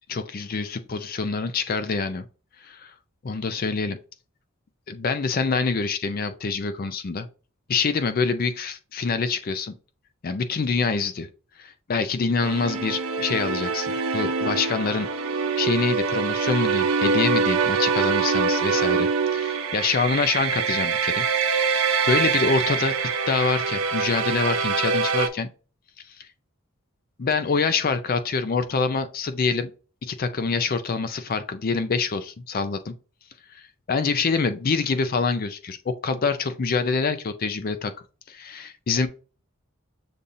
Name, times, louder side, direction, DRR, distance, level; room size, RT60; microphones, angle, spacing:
voice 1, 0.1-2.3 2.6-2.9 3.2-4.0 4.9-7.3 7.7-9.7 10.2-11.3 11.6-15.1 15.6-22.9 23.3-25.5 26.2-26.3 27.2-29.7 30.0-32.9 33.5-33.6 33.9-37.9 38.3-39.1, left 4 dB, 45° left, 0.4 m, -26 dB
sound 1, 12.4-25.3, right 5 dB, 85° right, 0.6 m, -24 dB
6.9 x 2.6 x 2.6 m
head